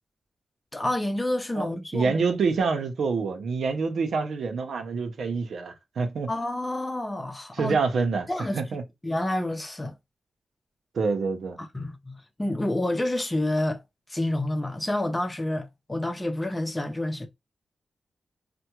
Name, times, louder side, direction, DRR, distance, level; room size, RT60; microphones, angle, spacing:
voice 1, 0.7-2.1 6.3-7.8 8.3-8.6 9.0-9.9 11.6-13.8 14.1-17.3, left 1 dB, 20° left, 0.6 m, -28 dB
voice 2, 1.9-6.3 7.5-8.3 8.5-8.8 10.9-11.6, right 4 dB, 80° right, 0.7 m, -26 dB
3.4 x 2.2 x 2.9 m
cardioid pair, 75°, 0 cm